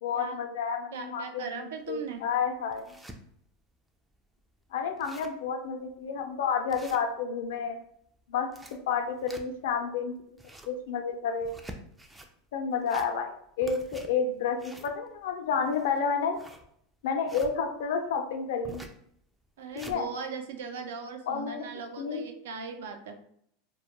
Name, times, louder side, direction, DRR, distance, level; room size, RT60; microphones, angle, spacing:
voice 1, 0.0-2.9 4.7-7.8 8.3-8.5 8.9-10.4 10.7-11.6 12.5-16.4 17.0-18.8 19.7-20.1 21.3-21.7 22.0-22.3, left 6 dB, 75° left, 5 dB, 0.5 m, -30 dB
voice 2, 0.9-2.2 19.6-23.2, right 5 dB, 80° right, 6 dB, 0.4 m, -39 dB
sound 1, 1.9-2.0 2.5-3.2 3.7-3.8 4.1-4.2 4.6-4.7 4.9-5.5 5.9-6.0 6.7-7.5 8.3-9.8 10.2-10.8 11.4-12.3 12.7-13.4 13.6-17.5 18.6-19.0 19.4-20.0, right 1 dB, 10° right, 0.3 m, -47 dB
2.2 x 2.1 x 2.9 m, 0.68 s
supercardioid pair, 120°, 0 cm